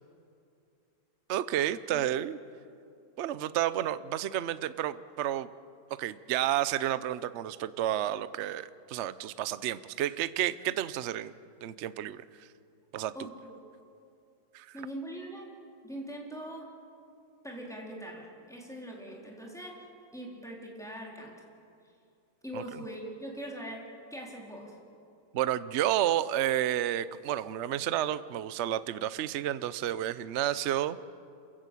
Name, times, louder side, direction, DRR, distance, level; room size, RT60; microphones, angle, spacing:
voice 1, 1.3-2.4 3.2-5.5 6.0-11.3 11.6-12.2 12.9-13.1 14.5-14.7 22.5-22.6 25.3-31.1, right 12 dB, 85° right, 15 dB, 0.6 m, -31 dB
voice 2, 13.1-13.5 14.7-15.5 15.8-16.7 17.4-21.3 22.4-23.8 24.1-24.7, right 1 dB, ahead, -2 dB, 3.9 m, -42 dB
28.0 x 15.5 x 8.3 m, 2.5 s
omnidirectional pair, 2.1 m